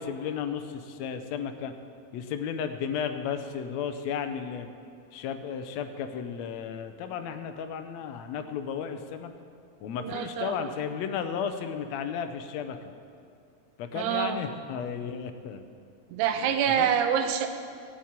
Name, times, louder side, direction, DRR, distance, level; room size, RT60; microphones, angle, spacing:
voice 1, 0.0-1.7 2.1-4.7 5.1-9.3 9.8-12.9 13.8-15.6 16.8-16.9, left 7 dB, 75° left, 8 dB, 1.8 m, -34 dB
voice 2, 10.0-10.7 14.0-14.4 16.1-17.5, right 8 dB, 90° right, 7 dB, 2.3 m, -26 dB
14.0 x 5.8 x 8.8 m, 2.3 s
omnidirectional pair, 3.4 m